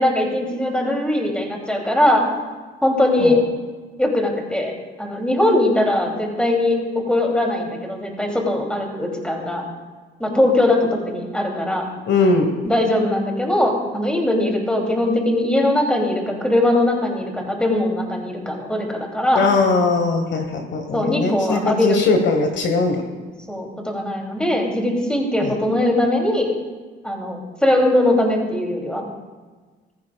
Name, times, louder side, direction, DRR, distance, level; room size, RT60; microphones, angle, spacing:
voice 1, 0.0-2.2 2.8-3.4 4.0-4.7 5.0-6.8 7.1-9.6 10.2-11.9 12.6-19.5 20.9-22.0 23.5-26.5 27.0-29.0, left 1 dB, 5° left, 0 dB, 2.8 m, -20 dB
voice 2, 12.1-12.5 19.3-23.0 25.4-25.5, left 3 dB, 65° left, 5 dB, 1.3 m, -20 dB
15.0 x 14.5 x 2.3 m, 1.4 s
cardioid pair, 90°, 20 cm